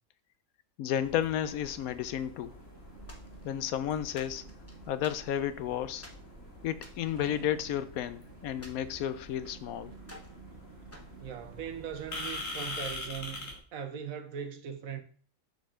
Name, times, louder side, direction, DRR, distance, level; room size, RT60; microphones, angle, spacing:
voice 1, 0.8-2.5 3.4-4.4 4.9-6.0 6.6-9.9, left 10 dB, 80° left, 1.1 m, -32 dB
sound 1, 1.0-13.6, left 2 dB, 65° left, 2.3 m, -45 dB
sound 2, 1.0-13.4, right 7 dB, 50° right, 1.0 m, -54 dB
sound 3, 3.1-3.7 4.2-5.6 6.0-6.3 6.7-8.1 8.6-9.6 10.0-10.4 10.9-12.0, left 1 dB, 10° left, 1.1 m, -54 dB
voice 2, 11.2-15.0, right 8 dB, 75° right, 1.3 m, -40 dB
6.7 x 6.3 x 3.7 m
omnidirectional pair, 1.5 m